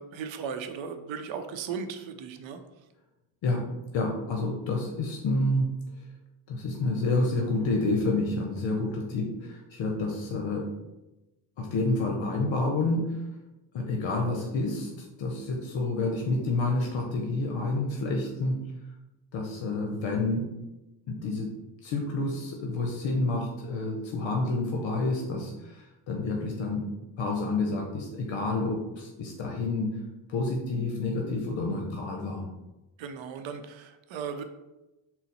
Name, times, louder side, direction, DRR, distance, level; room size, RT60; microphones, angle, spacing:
voice 1, 0.0-2.6 33.0-34.4, right 6 dB, 70° right, 8 dB, 0.6 m, -36 dB
voice 2, 3.9-5.7 6.5-10.8 11.6-13.2 13.7-18.6 19.3-20.5 21.1-21.5 21.8-30.0 30.3-32.5, left 2 dB, 65° left, 1 dB, 0.7 m, -29 dB
4.0 x 2.1 x 4.0 m, 1.0 s
supercardioid pair, 70°, 48 cm